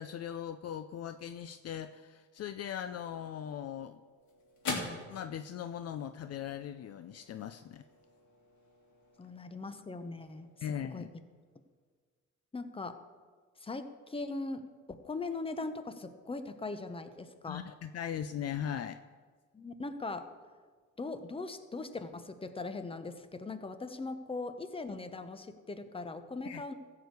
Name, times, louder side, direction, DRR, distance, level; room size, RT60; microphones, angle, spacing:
voice 1, 0.0-4.0 5.1-7.8 10.6-11.1 17.5-19.0 26.4-26.6, left 9 dB, 55° left, 11 dB, 0.5 m, -39 dB
sound 1, 3.4-11.9, left 3 dB, 70° left, 2.8 m, -46 dB
voice 2, 9.2-10.5 10.9-11.1 12.5-13.0 13.6-17.7 19.5-20.3 21.0-26.7, left 3 dB, 20° left, 10 dB, 0.9 m, -40 dB
14.5 x 4.9 x 8.2 m, 1.5 s
cardioid pair, 90°, 30 cm